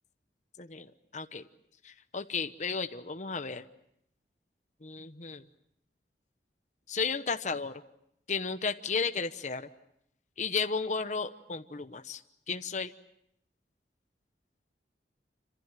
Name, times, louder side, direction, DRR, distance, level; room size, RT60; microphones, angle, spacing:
voice 1, 0.6-1.4 1.8-3.6 4.8-5.4 6.9-7.7 8.3-9.7 10.4-12.2 12.5-12.9, left 5 dB, 40° left, 8 dB, 1.0 m, -33 dB
27.0 x 26.0 x 7.5 m, 0.77 s
head